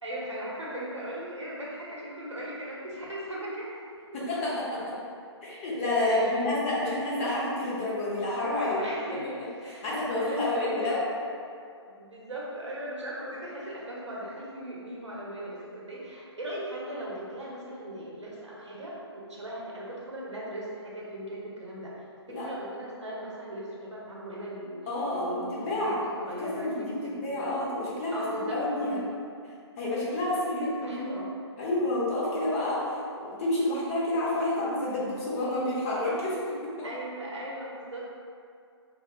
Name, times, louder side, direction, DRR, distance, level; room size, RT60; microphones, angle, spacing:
voice 1, 0.0-3.8 6.0-6.5 6.8-7.1 8.6-11.2 11.8-24.8 25.1-27.5 28.1-29.0 30.6-31.3 36.8-38.1, right 1 dB, 85° right, -5 dB, 1.0 m, -38 dB
voice 2, 4.1-4.9 5.4-8.8 9.8-11.0 22.3-22.5 24.9-26.0 26.4-29.0 29.8-31.2 31.6-36.7, left 1 dB, 30° left, -6 dB, 0.8 m, -29 dB
4.8 x 2.3 x 2.3 m, 2.4 s
figure-of-eight pair, 140°, 15 cm